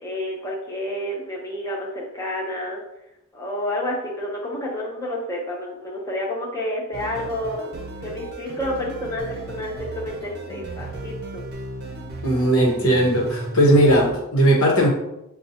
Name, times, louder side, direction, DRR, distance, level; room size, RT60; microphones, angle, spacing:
voice 1, 0.0-2.8 3.3-11.5, left 1 dB, 15° left, -3 dB, 0.7 m, -30 dB
sound 1, 6.9-14.1, right 2 dB, 45° right, 0.6 m, -35 dB
voice 2, 12.2-14.9, right 1 dB, 70° left, 0 dB, 1.1 m, -17 dB
6.9 x 2.3 x 2.8 m, 0.85 s
head